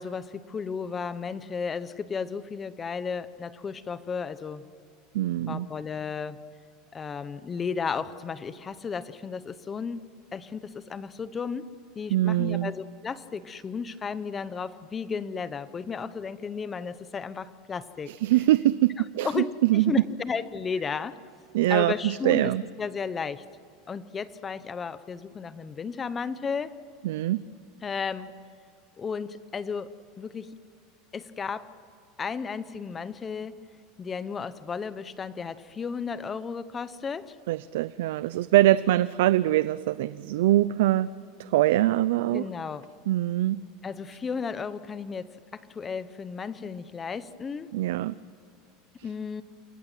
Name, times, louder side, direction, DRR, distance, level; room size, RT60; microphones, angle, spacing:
voice 1, 0.0-4.6 5.5-6.4 6.9-10.0 10.3-11.7 12.0-18.1 19.2-21.2 21.7-22.5 22.8-23.4 23.9-26.8 27.8-28.3 29.0-30.5 31.1-31.7 32.2-33.6 34.0-37.4 42.3-42.9 43.8-47.7 49.0-49.4, left 5 dB, 20° left, 14 dB, 0.9 m, -34 dB
voice 2, 5.1-5.7 12.1-12.7 18.1-19.9 21.5-22.6 27.0-27.4 37.5-41.1 41.4-42.5 43.1-43.6 47.7-48.1, right 15 dB, 85° right, 16 dB, 0.6 m, -23 dB
28.5 x 22.5 x 9.2 m, 2.4 s
supercardioid pair, 160°, 0 cm